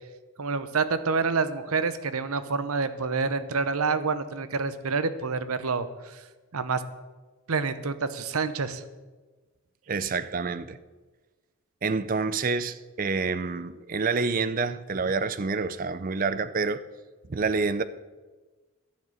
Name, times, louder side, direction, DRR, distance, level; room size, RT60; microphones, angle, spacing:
voice 1, 0.4-6.2 6.5-6.8 7.5-8.8, right 4 dB, 75° right, 0.8 m, -28 dB
voice 2, 9.9-10.8 11.8-16.8 17.3-17.8, right 4 dB, 40° right, 0.4 m, -28 dB
11.5 x 6.3 x 8.8 m
head